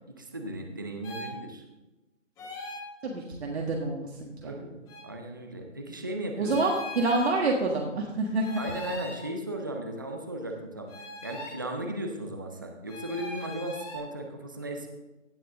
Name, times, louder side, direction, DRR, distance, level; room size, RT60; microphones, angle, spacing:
voice 1, 0.1-1.6 4.4-4.8 5.0-6.5 8.6-10.9 11.2-14.9, right 1 dB, 15° right, 3 dB, 0.5 m, -36 dB
sound 1, 1.0-1.3 2.4-2.8 4.9-5.0 6.4-7.4 8.4-9.2 10.9-11.6 12.9-14.0, left 1 dB, 10° left, 1.6 m, -40 dB
voice 2, 3.0-4.5 6.4-8.5, right 2 dB, 55° right, -1 dB, 1.7 m, -28 dB
15.5 x 5.8 x 3.6 m, 1.1 s
figure-of-eight pair, 155°, 38 cm